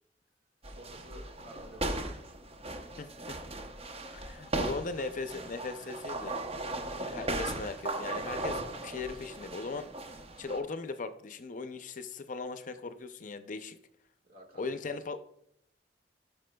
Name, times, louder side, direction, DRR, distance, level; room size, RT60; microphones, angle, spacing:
sound 1, 0.6-10.6, right 2 dB, 35° right, 0.8 m, -37 dB
voice 1, 0.7-2.4 14.2-14.9, right 1 dB, 55° right, 2 dB, 1.9 m, -53 dB
voice 2, 3.0-3.4 4.1-6.3 7.1-9.9 10.4-13.8 14.6-15.2, left 4 dB, 45° left, 10 dB, 0.5 m, -38 dB
12.5 x 6.0 x 2.3 m, 0.72 s
head